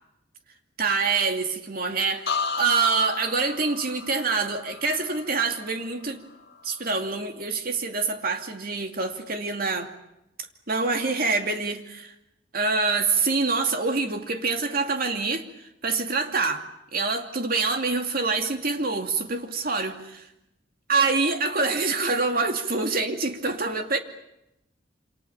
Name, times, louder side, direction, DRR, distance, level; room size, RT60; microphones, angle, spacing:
voice 1, 0.8-6.2 6.6-9.9 10.7-12.1 12.5-15.4 15.8-16.6 16.9-20.3 20.9-24.0, right 4 dB, 50° right, 5 dB, 2.6 m, -26 dB
sound 1, 2.3-6.1 6.4-6.9, left 5 dB, 55° left, 1.9 m, -34 dB
28.0 x 27.0 x 7.1 m, 0.85 s
head